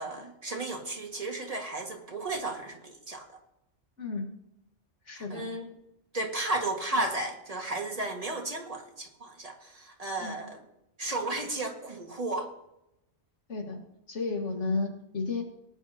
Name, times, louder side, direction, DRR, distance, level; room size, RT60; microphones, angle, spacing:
voice 1, 0.0-3.4 5.2-5.7 6.1-10.6 11.0-12.5, right 2 dB, 30° right, 2 dB, 1.8 m, -34 dB
voice 2, 5.1-5.5 10.2-10.3 13.5-13.8 14.1-15.4, left 3 dB, 80° left, 2 dB, 2.1 m, -32 dB
18.5 x 9.5 x 2.8 m, 0.86 s
omnidirectional pair, 1.2 m